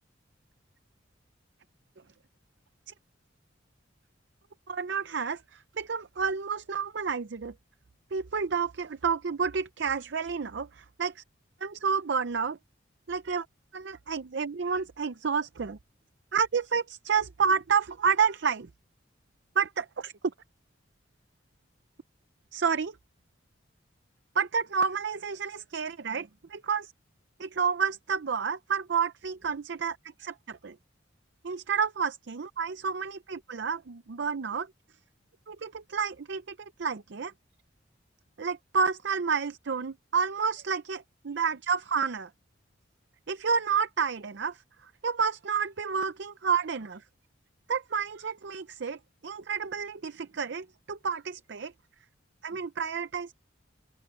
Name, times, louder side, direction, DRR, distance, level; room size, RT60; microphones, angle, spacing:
voice 1, 4.7-7.5 8.1-11.2 11.6-12.6 13.1-13.5 13.7-15.8 16.3-18.7 19.6-20.1 22.5-23.0 24.3-26.9 27.4-30.8 31.4-34.7 35.5-37.3 38.4-42.3 43.3-47.0 47.7-51.7 52.4-53.3, right 6 dB, 60° right, 0.6 m, -30 dB
open air
head